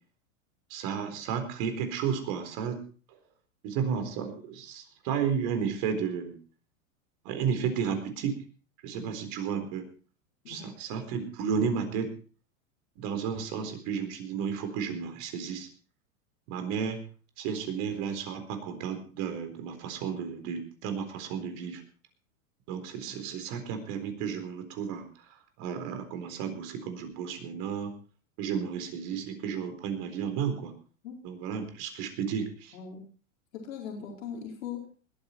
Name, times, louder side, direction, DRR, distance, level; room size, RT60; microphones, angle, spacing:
voice 1, 0.7-2.8 3.6-6.4 7.2-8.4 8.8-9.8 10.5-12.1 13.0-15.7 16.5-17.0 17.4-21.8 22.7-25.1 25.6-27.9 28.4-30.7 31.2-32.7, right 7 dB, 50° right, 7 dB, 4.1 m, -32 dB
voice 2, 32.7-33.0 33.5-34.9, left 7 dB, 80° left, 0 dB, 4.6 m, -40 dB
20.5 x 9.8 x 4.4 m, 0.38 s
supercardioid pair, 125°, 39 cm